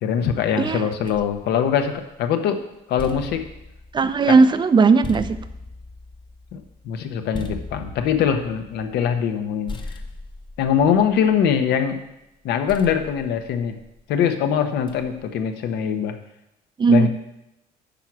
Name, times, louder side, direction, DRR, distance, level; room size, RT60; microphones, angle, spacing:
voice 1, 0.0-2.6 2.9-3.4 4.3-4.4 6.5-9.8 10.6-12.0 12.4-13.8 14.1-16.2 16.9-17.1, left 8 dB, 80° left, 7 dB, 1.0 m, -22 dB
voice 2, 0.6-0.9 3.9-5.4 16.8-17.1, right 4 dB, 25° right, 12 dB, 0.5 m, -16 dB
sound 1, 1.0-2.3 2.7-9.4 9.7-11.9 12.7-14.2 14.9-15.3, left 3 dB, 30° left, 0.9 m, -39 dB
9.1 x 4.7 x 6.1 m, 0.90 s
cardioid pair, 110°, 17 cm